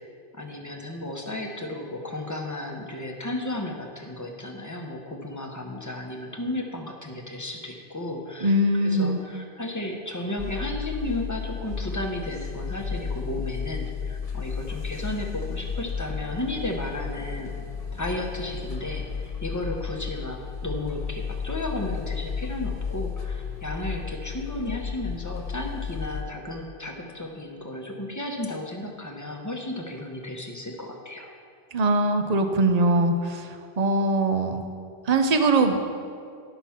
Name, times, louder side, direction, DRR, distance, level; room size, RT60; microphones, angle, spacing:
voice 1, 0.3-8.5 8.8-17.5 17.9-31.3, left 1 dB, 20° left, 1 dB, 0.9 m, -34 dB
voice 2, 8.4-9.2 31.7-33.5 33.8-34.6 35.1-36.0, right 2 dB, 45° right, 6 dB, 0.7 m, -22 dB
sound 1, 10.4-26.2, left 6 dB, 40° left, 0.8 m, -33 dB
10.5 x 5.9 x 5.8 m, 2.3 s
omnidirectional pair, 1.1 m